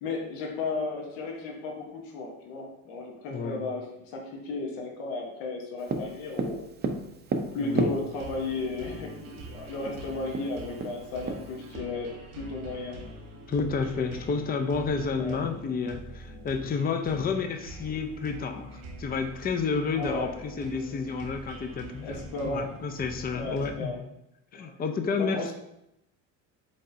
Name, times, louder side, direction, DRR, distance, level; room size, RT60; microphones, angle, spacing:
voice 1, 0.0-6.6 7.5-13.0 15.2-15.4 19.9-20.3 22.0-22.7 23.3-24.0 24.5-24.7 25.2-25.5, left 3 dB, 75° left, 0 dB, 1.1 m, -34 dB
voice 2, 3.3-3.6 7.6-8.0 13.5-18.7 19.0-23.9 24.5-25.5, left 5 dB, 25° left, 6 dB, 0.5 m, -30 dB
Tap, 5.9-8.5 9.5-9.6 9.9-10.0 10.3-11.8, right 3 dB, 30° right, 0.5 m, -31 dB
sound 1, 8.1-23.7, right 1 dB, 85° right, 1.4 m, -44 dB
5.2 x 3.8 x 2.6 m, 0.85 s
supercardioid pair, 90°, 36 cm